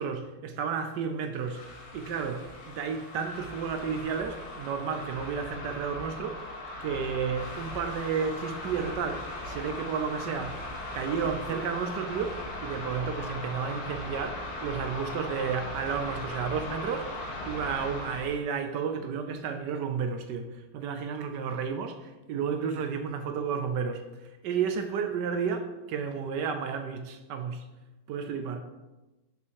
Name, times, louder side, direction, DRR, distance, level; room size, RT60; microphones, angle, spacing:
voice 1, 0.0-1.6 1.9-6.4 6.8-10.7 10.9-27.6 28.1-28.6, right 6 dB, 70° right, 1.0 m, -32 dB
sound 1, 1.4-18.4, left 1 dB, 80° left, 2.1 m, -39 dB
6.7 x 5.3 x 4.7 m
omnidirectional pair, 2.4 m